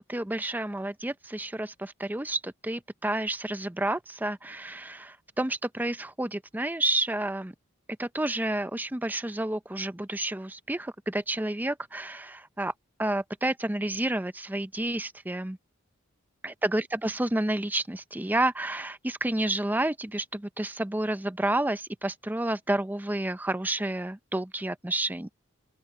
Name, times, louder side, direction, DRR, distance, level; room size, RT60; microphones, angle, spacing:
voice 1, 0.0-7.5 8.0-12.7 13.0-15.6 16.4-25.3, right 1 dB, 10° right, 0.5 m, -30 dB
open air
head